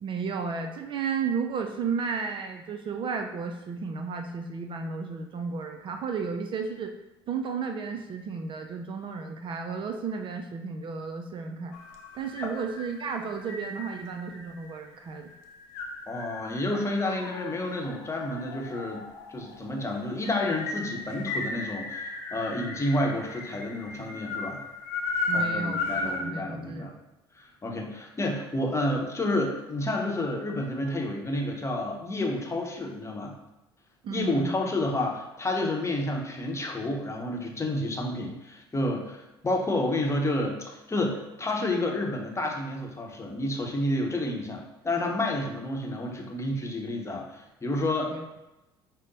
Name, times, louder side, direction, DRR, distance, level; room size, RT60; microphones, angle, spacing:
voice 1, 0.0-6.9 7.3-11.8 12.1-15.3 25.3-27.0 34.0-34.5 48.1-48.2, right 5 dB, 40° right, 4 dB, 0.4 m, -33 dB
sound 1, 11.7-26.3, left 3 dB, 70° left, 0.7 m, -36 dB
voice 2, 16.1-19.1 19.3-24.6 25.3-26.9 27.4-33.3 34.1-48.1, left 1 dB, 20° left, 1 dB, 0.9 m, -30 dB
5.0 x 2.1 x 4.0 m, 0.96 s
hypercardioid pair, 60°, 13 cm